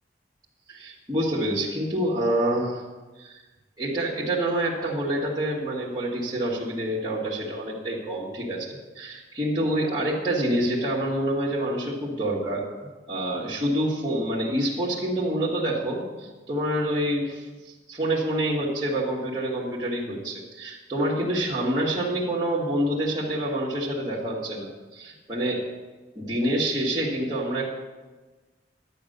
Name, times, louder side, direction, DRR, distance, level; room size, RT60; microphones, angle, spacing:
voice 1, 0.7-2.9 3.2-3.4 3.8-25.6 26.2-27.7, right 1 dB, 20° right, -8 dB, 2.0 m, -27 dB
12.0 x 9.0 x 6.7 m, 1.2 s
head